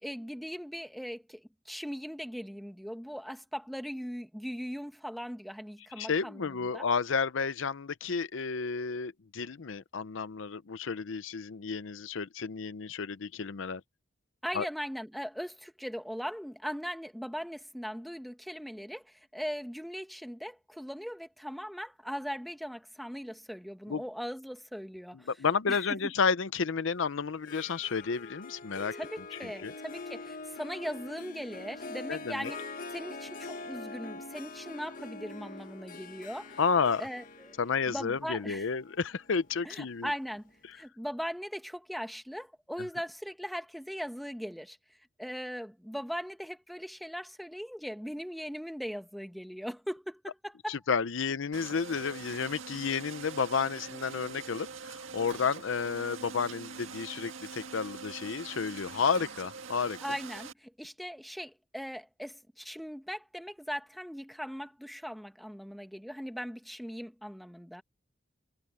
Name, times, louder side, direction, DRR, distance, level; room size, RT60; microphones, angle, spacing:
voice 1, 0.0-6.9 14.4-25.3 25.7-26.0 28.9-36.6 37.0-37.6 37.9-38.7 39.6-44.8 45.2-50.8 52.3-52.4 60.0-67.8, equal, ahead, 1.2 m, -39 dB
voice 2, 6.0-13.8 14.5-14.7 23.9-24.0 25.3-28.9 29.6-29.7 32.1-32.5 36.6-37.0 37.6-40.1 50.7-60.0, left 5 dB, 75° left, 0.6 m, -31 dB
Harp, 27.3-40.2, left 3 dB, 45° left, 1.3 m, -44 dB
sound 1, 51.5-60.5, right 5 dB, 85° right, 1.8 m, -44 dB
head